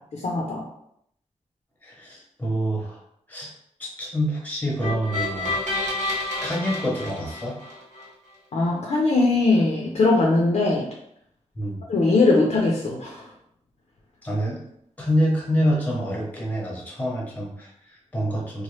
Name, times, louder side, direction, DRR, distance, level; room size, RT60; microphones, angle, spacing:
voice 1, 0.2-0.7 8.5-10.9 11.9-13.3, left 3 dB, 65° left, -2 dB, 0.5 m, -20 dB
voice 2, 1.8-3.0 3.3-3.5 3.8-5.5 6.4-7.6 11.6-11.8 14.2-14.6 15.0-18.6, equal, 15° left, -3 dB, 0.8 m, -26 dB
sound 1, 4.8-8.0, left 2 dB, 80° right, 1.1 m, -29 dB
3.0 x 2.1 x 3.1 m, 0.73 s
wide cardioid pair, 125°, 13 cm